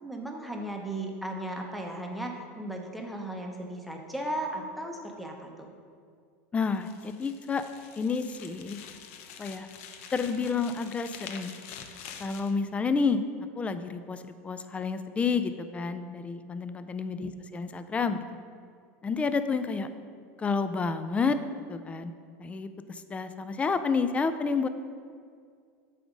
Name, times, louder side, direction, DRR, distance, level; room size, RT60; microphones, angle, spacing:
voice 1, 0.0-5.7 17.2-17.3, right 1 dB, ahead, 1 dB, 0.8 m, -36 dB
voice 2, 6.5-7.6 8.0-8.8 9.4-9.7 10.1-11.5 12.2-13.2 13.6-18.2 19.0-19.9 20.4-21.4 21.7-22.1 22.4-24.7, left 5 dB, 15° left, 11 dB, 0.3 m, -30 dB
sound 1, 6.6-12.5, left 7 dB, 75° left, 0.6 m, -46 dB
7.7 x 3.5 x 5.1 m, 2.2 s
supercardioid pair, 120°, 7 cm